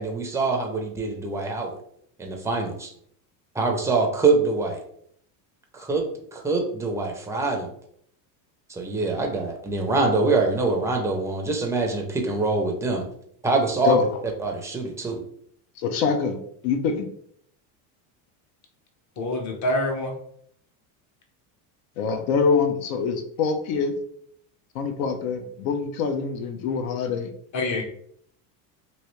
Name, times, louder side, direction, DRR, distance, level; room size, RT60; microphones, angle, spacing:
voice 1, 0.0-1.8 2.2-2.9 3.5-4.8 5.7-6.0 6.3-7.7 8.7-13.0 13.4-14.0 14.4-15.2, right 3 dB, 5° right, 1 dB, 0.4 m, -24 dB
voice 2, 15.8-17.1 22.0-23.9 24.7-27.3, left 5 dB, 75° left, 7 dB, 0.7 m, -25 dB
voice 3, 19.2-20.2 27.5-27.8, left 1 dB, 40° left, 3 dB, 0.9 m, -26 dB
3.1 x 2.7 x 3.0 m, 0.67 s
cardioid pair, 130°, 43 cm